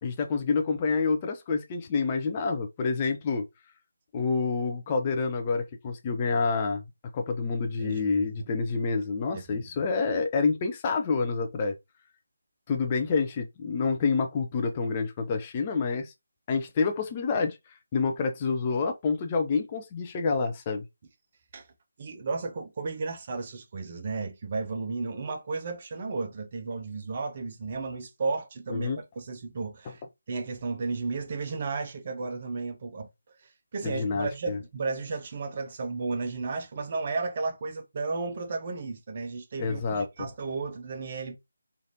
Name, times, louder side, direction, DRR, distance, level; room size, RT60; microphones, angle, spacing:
voice 1, 0.0-3.5 4.1-6.8 7.1-11.8 12.7-16.1 16.5-17.6 17.9-20.8 28.7-29.0 33.8-34.6 39.6-40.3, left 4 dB, 25° left, 0.4 m, -28 dB
voice 2, 7.8-8.5 9.3-9.7 21.5-21.7 22.0-33.1 33.4-41.4, right 4 dB, 35° right, 0.6 m, -34 dB
3.2 x 2.5 x 2.7 m
figure-of-eight pair, 155°, 0 cm